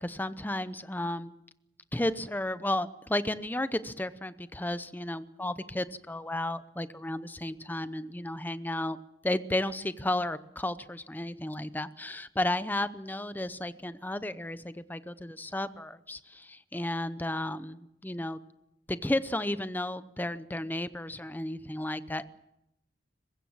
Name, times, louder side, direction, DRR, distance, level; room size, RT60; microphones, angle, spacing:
voice 1, 0.0-1.3 1.9-9.0 9.2-18.4 18.9-22.2, left 1 dB, 10° left, 13 dB, 0.7 m, -33 dB
23.5 x 21.0 x 7.3 m, 0.85 s
head